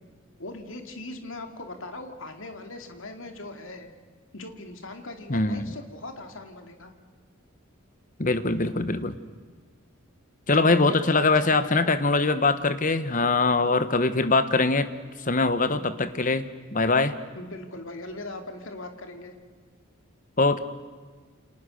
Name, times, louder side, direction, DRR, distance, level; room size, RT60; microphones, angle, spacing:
voice 1, 0.4-3.9 4.3-6.9 10.5-11.8 15.7-15.9 17.3-19.3, left 2 dB, 60° left, 5 dB, 2.6 m, -39 dB
voice 2, 5.3-5.7 8.2-9.2 10.5-14.9 15.2-17.2 20.4-20.6, left 3 dB, 35° left, 12 dB, 1.2 m, -23 dB
29.0 x 27.5 x 6.5 m, 1.5 s
head